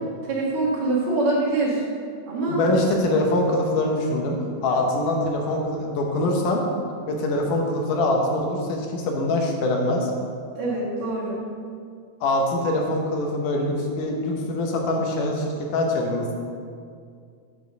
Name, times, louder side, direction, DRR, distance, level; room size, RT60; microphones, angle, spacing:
voice 1, 0.3-1.8 2.3-2.6 10.6-11.5, right 2 dB, 60° right, -6 dB, 2.7 m, -24 dB
voice 2, 2.5-4.4 4.6-6.6 7.1-10.1 12.2-15.5 15.7-16.3, left 1 dB, 75° left, 0 dB, 2.4 m, -23 dB
7.3 x 5.0 x 6.3 m, 2.2 s
omnidirectional pair, 3.8 m